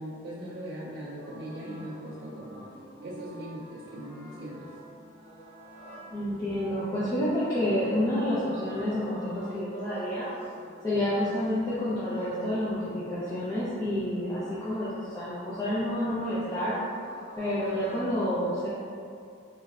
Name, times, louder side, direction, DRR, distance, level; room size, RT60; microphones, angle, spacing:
voice 1, 0.0-2.6 3.0-4.7, equal, 55° right, -7 dB, 0.4 m, -40 dB
sound 1, 1.2-18.1, right 1 dB, 10° right, 0.9 m, -48 dB
voice 2, 6.1-10.3 10.8-16.7 17.4-18.7, left 1 dB, 15° left, -11 dB, 0.4 m, -29 dB
4.6 x 2.1 x 2.3 m, 2.4 s
head